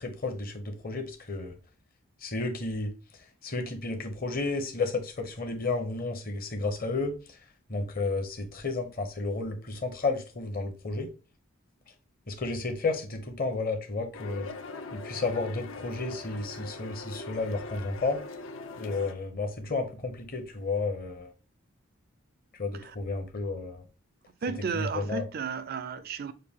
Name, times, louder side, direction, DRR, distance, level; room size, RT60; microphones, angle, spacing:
voice 1, 0.0-1.5 2.2-2.9 3.4-7.1 7.7-11.1 12.3-14.5 15.0-18.2 18.8-21.3 22.6-23.8 24.7-25.2, left 3 dB, 40° left, 0.9 m, -32 dB
sound 1, 14.1-19.1, left 3 dB, 60° left, 0.5 m, -41 dB
voice 2, 24.4-26.3, right 5 dB, 45° right, 0.4 m, -33 dB
6.5 x 2.3 x 3.5 m
head